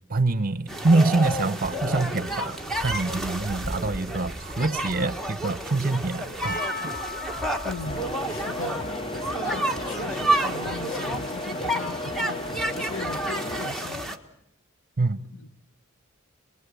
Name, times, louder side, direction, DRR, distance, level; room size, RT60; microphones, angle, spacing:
voice 1, 0.1-6.6 15.0-15.2, right 3 dB, 45° right, 1.0 m, -25 dB
sound 1, 0.7-14.2, right 1 dB, ahead, 1.4 m, -30 dB
Percussion, 6.4-11.7, left 2 dB, 40° left, 1.9 m, -39 dB
voice 2, 7.6-8.8 9.1-14.2 15.4-15.5, left 4 dB, 65° left, 1.3 m, -38 dB
sound 2, 7.8-13.7, left 1 dB, 25° left, 0.9 m, -34 dB
27.0 x 20.0 x 8.5 m
head